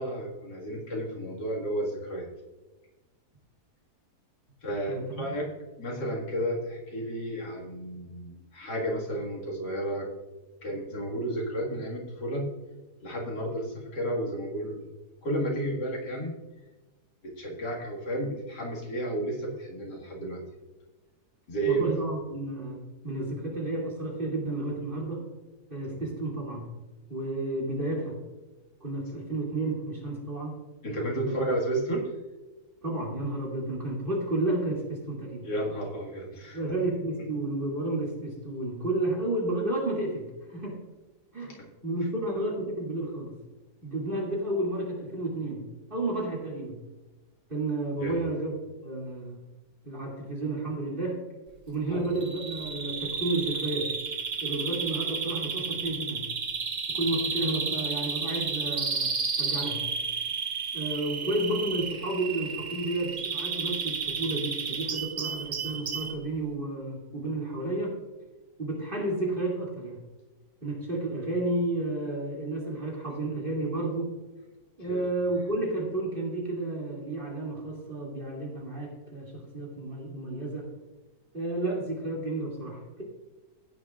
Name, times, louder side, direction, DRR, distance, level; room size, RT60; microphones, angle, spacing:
voice 1, 0.0-2.3 4.6-5.5 5.8-10.1 10.6-12.5 13.0-14.9 15.2-16.3 17.2-20.4 21.5-21.9 30.8-32.1 35.4-36.6 41.4-41.5 48.0-48.2 51.9-52.1 74.8-75.1, right 1 dB, 80° left, -1 dB, 2.6 m, -32 dB
voice 2, 4.9-5.4 21.6-25.3 25.7-26.7 27.1-28.2 28.8-30.6 31.2-31.5 32.8-35.5 36.5-40.8 41.3-43.4 43.8-46.8 47.5-48.5 48.8-49.4 49.8-51.3 51.7-54.0 54.4-56.2 56.9-59.1 59.4-59.8 60.7-68.0 68.6-70.0 70.6-74.2 74.8-80.7 81.3-83.0, right 2 dB, 30° right, -2 dB, 2.8 m, -31 dB
Bird vocalization bird call bird song, 52.2-66.2, right 5 dB, 50° right, 0.5 m, -32 dB
15.5 x 9.4 x 2.5 m, 1.1 s
omnidirectional pair, 1.8 m